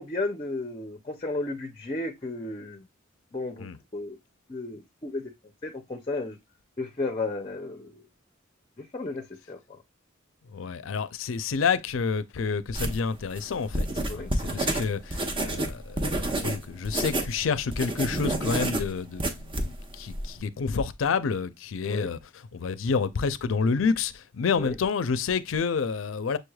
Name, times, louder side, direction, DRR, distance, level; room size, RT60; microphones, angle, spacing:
voice 1, 0.0-2.9 3.3-4.2 4.5-5.3 5.6-6.4 6.8-8.0 8.8-9.8 14.1-14.3 21.8-22.1 24.5-24.8, left 2 dB, 25° left, 0.5 m, -34 dB
voice 2, 10.5-22.2 22.5-26.4, left 5 dB, 80° left, 0.5 m, -29 dB
sound 1, 12.7-17.3 17.6-20.3, right 1 dB, 25° right, 0.7 m, -29 dB
6.5 x 3.2 x 2.3 m
head